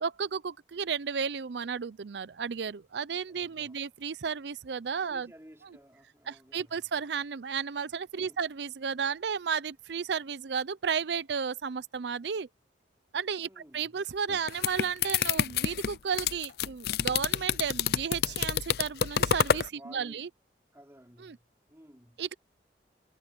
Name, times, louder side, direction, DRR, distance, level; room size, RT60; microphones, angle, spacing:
voice 1, 0.0-5.3 6.3-12.5 13.1-20.3 21.2-21.4 22.2-22.3, right 6 dB, 75° right, 0.5 m, -33 dB
voice 2, 3.3-3.8 5.1-6.9 8.2-8.4 13.4-14.0 19.7-20.3 20.7-22.2, equal, 15° right, 3.8 m, -54 dB
sound 1, 14.3-19.7, left 8 dB, 55° left, 0.4 m, -28 dB
head